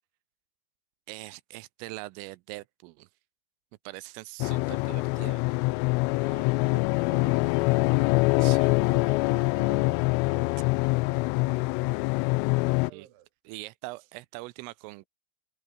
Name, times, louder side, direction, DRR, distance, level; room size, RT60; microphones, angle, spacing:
voice 1, 1.1-3.1 3.9-5.4 8.4-8.7 12.9-13.1 13.5-15.1, right 21 dB, 90° right, 3.3 m, -42 dB
sound 1, 4.4-12.9, left 25 dB, 85° left, 3.0 m, -24 dB
voice 2, 6.2-10.9 11.4-12.0 12.9-13.3, right 13 dB, 70° right, 3.9 m, -50 dB
omnidirectional pair, 5.8 m